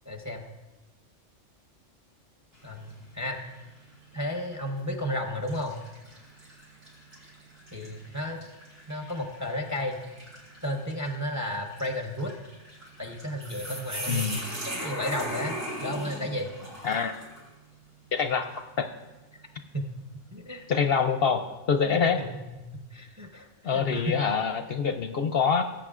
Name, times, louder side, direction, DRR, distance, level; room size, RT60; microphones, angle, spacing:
voice 1, 0.1-0.4 2.6-3.4 4.1-5.8 7.7-8.4 8.9-10.0 10.6-12.3 13.0-16.5 19.7-19.9 20.3-20.7 21.9-22.4 22.7-24.1, left 1 dB, 15° right, 2 dB, 0.8 m, -33 dB
sound 1, 2.5-3.0 3.5-3.7 4.6-4.9 5.5-17.5, equal, 50° right, 4.8 m, -40 dB
voice 2, 14.1-14.4 16.8-17.1 18.1-18.5 18.8-18.9 20.7-22.2 23.6-25.6, left 6 dB, 60° left, 7 dB, 0.7 m, -25 dB
19.5 x 8.5 x 2.4 m, 1.1 s
omnidirectional pair, 1.3 m